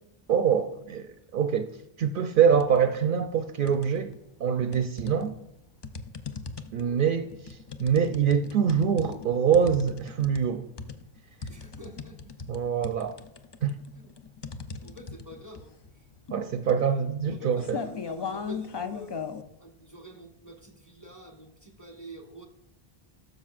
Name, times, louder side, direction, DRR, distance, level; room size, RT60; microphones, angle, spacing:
voice 1, 0.3-1.7 2.0-4.1 4.4-5.4 6.7-10.7 12.5-13.2 13.6-13.8 16.3-17.8, right 7 dB, 65° right, 0.7 m, -25 dB
sound 1, 2.5-2.9 3.2-4.2 4.7-19.4, left 5 dB, 40° left, 0.4 m, -39 dB
voice 2, 11.5-12.3 13.9-14.1 14.8-15.8 17.3-19.2 19.6-22.5, equal, 20° left, 1.1 m, -47 dB
12.0 x 6.5 x 2.4 m
omnidirectional pair, 1.0 m